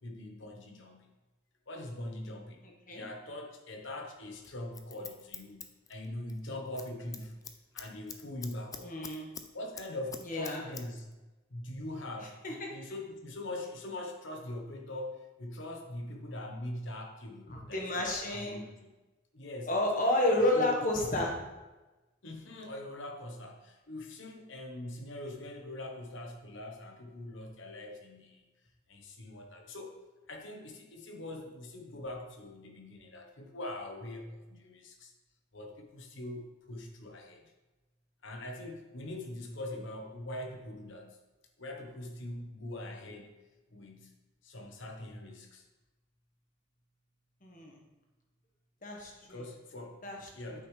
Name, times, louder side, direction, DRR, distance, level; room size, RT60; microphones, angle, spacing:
voice 1, 0.0-1.1 1.7-2.6 2.9-5.6 5.9-7.4 7.7-9.0 9.5-11.1 11.5-18.9 19.3-21.1 22.2-28.4 28.9-30.0 30.3-35.1 35.5-37.5 38.2-41.2 41.6-43.3 43.7-44.1 44.4-45.6 49.3-50.0 50.3-50.7, left 1 dB, 60° left, 3 dB, 1.1 m, -42 dB
voice 2, 2.6-3.0 8.8-9.3 10.3-10.6 12.4-12.7 17.5-18.6 19.7-21.3 47.4-47.8 48.8-49.4 50.0-50.2 50.5-50.6, left 1 dB, 40° left, 0 dB, 1.4 m, -30 dB
Scissors, 4.4-6.4 6.7-6.9 7.1-9.5 9.7-10.8 11.1-11.2, left 6 dB, 15° left, 0.3 m, -45 dB
8.4 x 6.0 x 3.3 m, 1.1 s
head